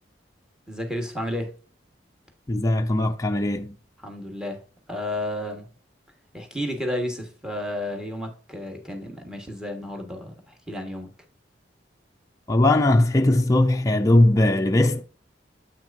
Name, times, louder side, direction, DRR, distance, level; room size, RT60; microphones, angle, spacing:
voice 1, 0.7-1.5 4.0-4.6 4.9-5.7 6.3-11.1, left 1 dB, 5° right, 1.4 m, -32 dB
voice 2, 2.5-3.8 12.5-15.0, left 1 dB, 20° left, 0.5 m, -19 dB
8.0 x 6.0 x 2.6 m
head